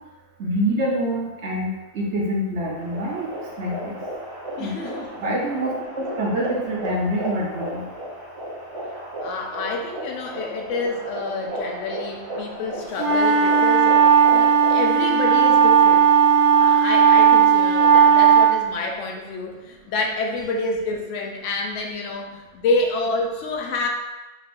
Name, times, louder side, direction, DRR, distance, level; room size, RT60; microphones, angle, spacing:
voice 1, 0.4-3.3 3.6-4.0 4.6-4.7 5.2-7.8, equal, 65° right, -3 dB, 1.0 m, -26 dB
sound 1, 2.8-14.9, right 1 dB, 30° right, 0.6 m, -34 dB
voice 2, 4.6-5.2 9.2-13.9 14.3-16.1 16.6-23.9, left 3 dB, 75° left, 2 dB, 1.0 m, -28 dB
sound 2, 13.0-18.5, right 7 dB, 5° right, 1.3 m, -15 dB
5.1 x 3.3 x 2.5 m, 1.1 s
omnidirectional pair, 1.3 m